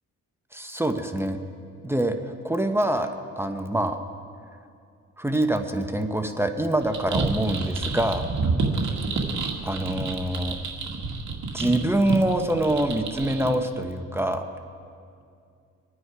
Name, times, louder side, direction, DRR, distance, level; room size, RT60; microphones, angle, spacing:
voice 1, 0.5-1.4 1.8-3.1 3.4-4.0 5.2-8.3 9.6-10.6 11.5-14.4, right 1 dB, 10° right, 6 dB, 1.0 m, -25 dB
sound 1, 6.8-13.5, right 3 dB, 70° right, 2.1 m, -29 dB
25.0 x 9.7 x 4.8 m, 2.4 s
cardioid pair, 90°, 30 cm